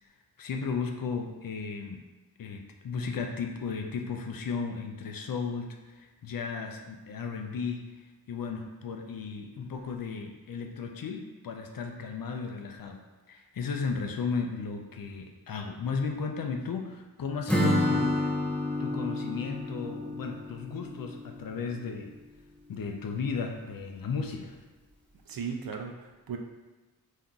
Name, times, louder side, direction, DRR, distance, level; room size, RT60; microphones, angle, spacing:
voice 1, 0.4-2.0 2.4-18.2 18.8-22.1 22.7-24.6, left 5 dB, 65° left, 3 dB, 0.5 m, -35 dB
Acoustic guitar / Strum, 17.5-21.4, left 1 dB, 5° left, 0.5 m, -29 dB
voice 2, 25.3-26.4, right 6 dB, 65° right, 3 dB, 0.5 m, -36 dB
3.7 x 2.7 x 2.3 m, 1.2 s
wide cardioid pair, 70°, 38 cm